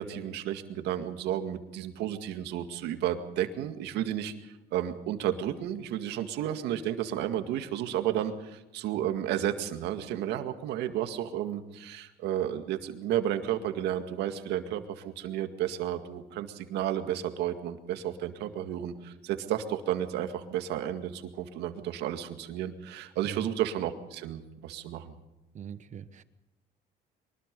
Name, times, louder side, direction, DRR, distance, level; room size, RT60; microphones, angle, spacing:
voice 1, 0.0-25.1, right 11 dB, 85° right, 7 dB, 2.0 m, -32 dB
voice 2, 23.2-23.6 25.5-26.2, right 8 dB, 45° right, 12 dB, 1.2 m, -42 dB
23.5 x 20.5 x 5.4 m, 0.97 s
cardioid pair, 110°, 17 cm